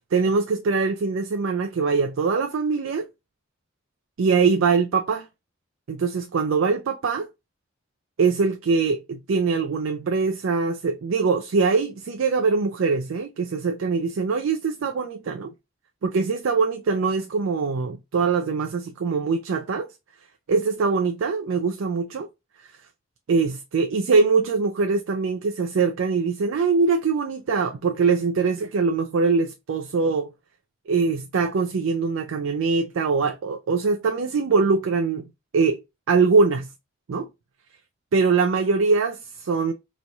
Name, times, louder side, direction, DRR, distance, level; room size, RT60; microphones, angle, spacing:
voice 1, 0.1-3.1 4.2-5.3 5.9-7.3 8.2-15.5 16.0-19.9 20.5-22.3 23.3-30.3 30.9-35.2 35.5-35.8 36.1-36.7 37.1-37.3 38.1-39.7, right 4 dB, 75° right, 0.4 m, -22 dB
4.0 x 3.1 x 2.2 m
head